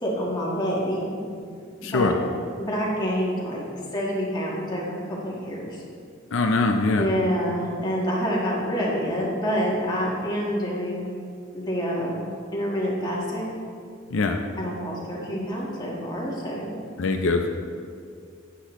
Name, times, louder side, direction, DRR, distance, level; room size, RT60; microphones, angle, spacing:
voice 1, 0.0-1.3 1.8-2.2 2.6-3.6 3.9-5.8 7.0-11.1 11.5-12.2 12.5-13.6 14.6-16.7, equal, 20° left, -4 dB, 1.6 m, -27 dB
voice 2, 1.8-2.2 6.3-7.1 14.1-14.4 17.0-17.5, left 3 dB, 80° left, 4 dB, 0.5 m, -22 dB
9.9 x 8.4 x 3.1 m, 2.3 s
head